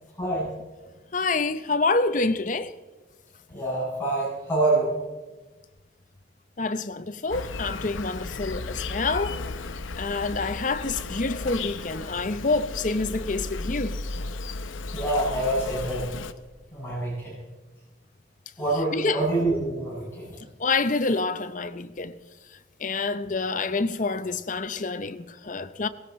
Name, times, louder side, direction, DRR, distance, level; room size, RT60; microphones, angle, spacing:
voice 1, 0.2-0.5 3.5-5.0 14.9-16.1 16.7-17.3 18.6-20.3, right 2 dB, 10° left, 6.7 m, -26 dB
voice 2, 1.1-2.8 6.6-9.4 9.7-14.0 18.7-19.3 20.6-22.2 22.5-25.9, left 3 dB, 40° left, 0.7 m, -27 dB
Insect, 7.3-16.3, left 3 dB, 85° left, 0.8 m, -35 dB
18.0 x 16.5 x 4.3 m
head